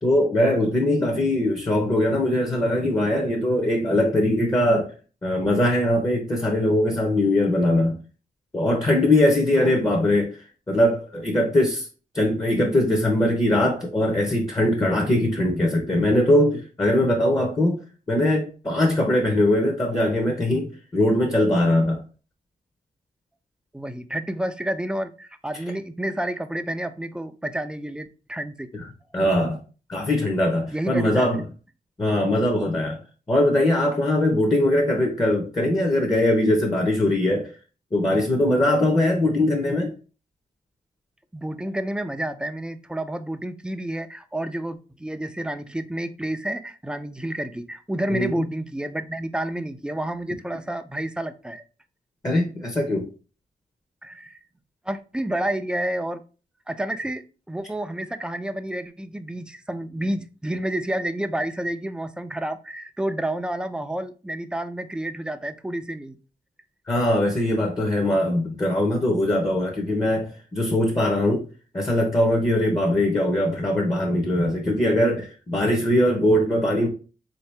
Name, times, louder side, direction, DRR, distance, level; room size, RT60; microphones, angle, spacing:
voice 1, 0.0-4.9 5.2-8.0 8.5-10.4 10.7-11.9 12.1-17.8 18.1-22.0 28.7-28.9 29.1-29.6 29.9-31.4 32.0-33.0 33.3-37.5 37.9-39.9 48.1-48.4 52.2-53.1 66.9-71.4 71.7-76.9, left 1 dB, 20° left, 0.8 m, -21 dB
voice 2, 23.7-28.7 30.7-31.3 41.3-51.6 54.0-54.4 54.8-56.2 56.7-66.2, right 1 dB, 5° right, 0.4 m, -30 dB
3.9 x 2.8 x 3.3 m
cardioid pair, 100°, 16 cm